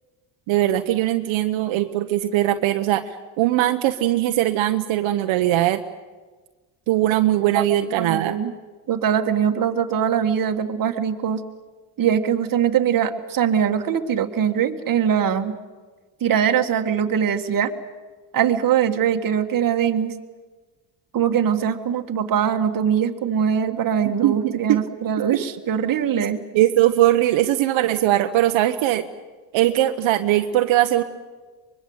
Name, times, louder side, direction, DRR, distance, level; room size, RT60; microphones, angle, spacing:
voice 1, 0.5-5.8 6.9-8.4 24.2-24.8 26.5-29.1 29.5-31.0, right 14 dB, 75° right, 7 dB, 1.1 m, -20 dB
voice 2, 8.0-8.5 8.9-11.4 12.0-15.5 16.2-17.7 18.3-20.1 21.1-26.4, right 8 dB, 45° right, 6 dB, 1.8 m, -22 dB
24.0 x 22.5 x 8.1 m, 1.3 s
cardioid pair, 115°, 47 cm